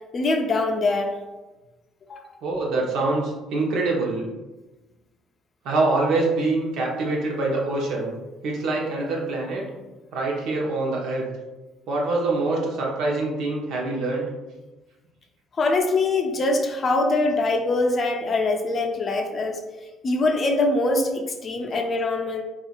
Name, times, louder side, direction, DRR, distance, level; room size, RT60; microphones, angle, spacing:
voice 1, 0.1-1.1 2.1-2.2 15.6-19.6 20.0-22.4, left 2 dB, 40° left, 2 dB, 0.5 m, -23 dB
voice 2, 2.4-4.3 5.6-8.1 8.4-9.7 10.1-11.3 11.9-14.3, right 2 dB, 70° right, -2 dB, 0.8 m, -25 dB
3.7 x 2.4 x 2.4 m, 1.1 s
cardioid pair, 95°, 0 cm